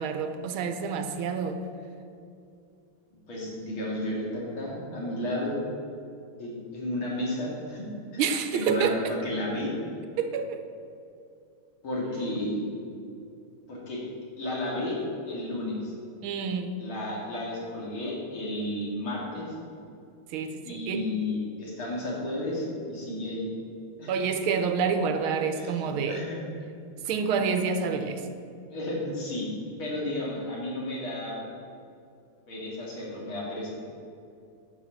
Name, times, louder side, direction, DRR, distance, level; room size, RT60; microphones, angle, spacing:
voice 1, 0.0-1.6 8.2-9.1 10.2-10.6 16.2-16.8 20.3-21.1 24.1-26.2 27.1-28.3, right 6 dB, 90° right, 8 dB, 1.7 m, -28 dB
voice 2, 3.3-5.6 6.4-7.9 8.1-8.2 8.5-9.7 11.8-12.7 13.7-14.0 14.4-15.9 16.8-19.6 20.6-23.5 24.0-24.1 25.5-26.4 28.7-29.5 29.8-31.4 32.5-33.7, left 1 dB, 75° left, -4 dB, 3.4 m, -32 dB
11.0 x 5.9 x 7.8 m, 2.5 s
omnidirectional pair, 2.3 m